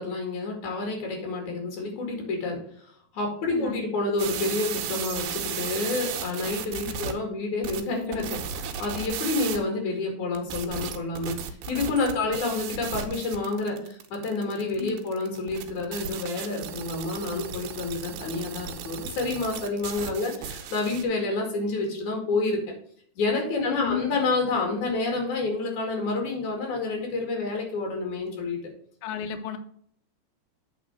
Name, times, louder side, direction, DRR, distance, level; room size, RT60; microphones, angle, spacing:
voice 1, 0.0-2.6 3.1-11.4 11.7-22.6 23.2-28.6, left 3 dB, 55° left, 2 dB, 3.5 m, -29 dB
voice 2, 3.5-3.8 6.9-7.0 14.8-15.0 23.7-24.1 29.0-29.6, left 10 dB, 85° left, 8 dB, 1.8 m, -32 dB
sound 1, 4.2-7.1 7.6-9.6 10.3-21.0, right 7 dB, 80° right, 2.6 m, -35 dB
8.4 x 4.3 x 6.0 m, 0.62 s
omnidirectional pair, 4.2 m